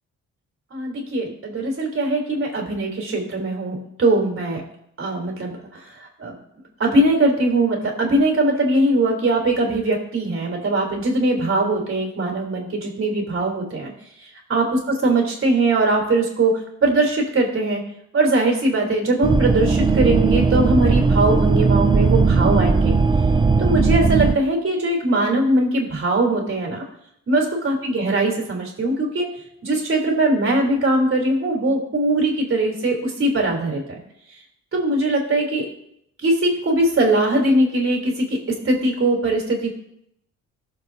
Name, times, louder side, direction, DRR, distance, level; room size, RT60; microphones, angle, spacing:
voice 1, 0.7-4.6 5.0-5.6 5.9-6.4 6.8-13.9 14.2-17.8 18.1-22.9 23.6-26.8 27.3-29.3 29.6-34.0 34.7-35.7 36.2-38.4 38.6-39.7, right 2 dB, 45° right, 0 dB, 3.4 m, -21 dB
sound 1, 19.2-24.4, right 4 dB, 15° right, 0.4 m, -17 dB
19.0 x 7.3 x 2.7 m, 0.74 s
cardioid pair, 90°, 30 cm